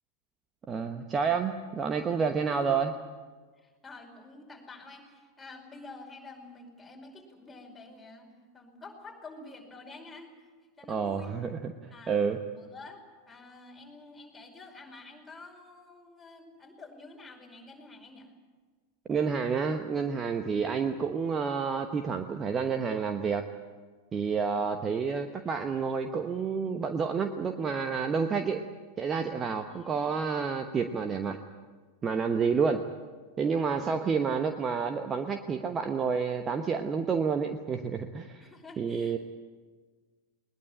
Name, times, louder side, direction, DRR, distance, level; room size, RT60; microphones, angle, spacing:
voice 1, 0.7-2.9 10.9-12.4 19.1-23.5 24.1-28.6 29.0-31.4 32.0-32.8 33.4-38.5 38.8-39.2, right 5 dB, 20° right, 7 dB, 1.1 m, -29 dB
voice 2, 2.4-2.8 3.6-10.5 10.8-11.3 11.9-12.2 12.5-18.3 20.5-20.7 24.6-24.7 29.7-30.0 33.6-33.9 38.4-39.2, left 3 dB, 10° left, 0 dB, 5.2 m, -49 dB
21.0 x 21.0 x 8.8 m, 1.4 s
figure-of-eight pair, 90°, 0 cm